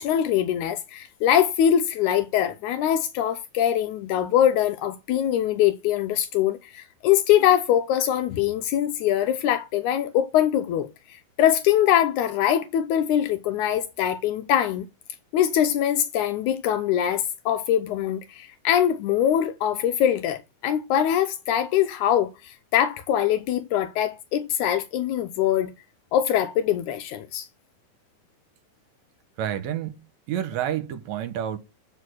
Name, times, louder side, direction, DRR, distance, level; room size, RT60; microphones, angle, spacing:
voice 1, 0.0-14.9 15.3-25.7 26.1-27.5, left 10 dB, 85° left, 2.1 m, -23 dB
voice 2, 29.4-30.0 30.3-31.6, right 10 dB, 75° right, 2.0 m, -29 dB
8.3 x 4.9 x 6.2 m
omnidirectional pair, 3.4 m